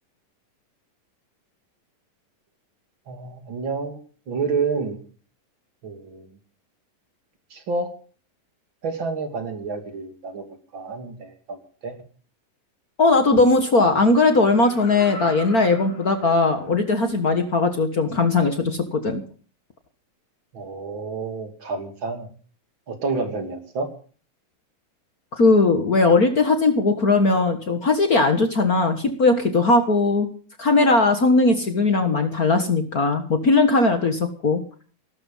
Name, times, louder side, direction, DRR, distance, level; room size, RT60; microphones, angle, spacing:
voice 1, 3.1-4.0 4.3-5.0 5.8-6.3 7.5-7.9 8.8-10.4 10.7-12.0 20.5-22.3 22.9-23.9, right 4 dB, 35° right, 6 dB, 3.1 m, -29 dB
voice 2, 13.0-19.2 25.4-30.3 30.6-34.6, left 3 dB, 55° left, 7 dB, 1.0 m, -19 dB
Laughter, 14.3-16.9 17.4-17.5, left 2 dB, 85° left, 4.6 m, -40 dB
18.5 x 12.5 x 5.6 m, 0.42 s
omnidirectional pair, 4.0 m